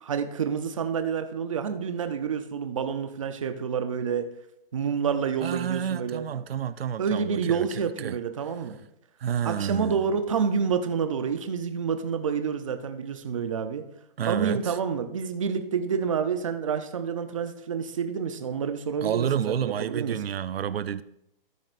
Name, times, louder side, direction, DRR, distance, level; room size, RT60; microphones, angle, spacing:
voice 1, 0.0-4.3 4.7-6.2 7.0-8.8 9.4-13.8 14.3-20.2, right 6 dB, 35° right, 0.6 m, -28 dB
voice 2, 5.4-8.2 9.2-10.0 14.2-14.8 19.0-21.0, right 9 dB, 90° right, 0.6 m, -30 dB
13.5 x 9.4 x 2.5 m
hypercardioid pair, 175°, 29 cm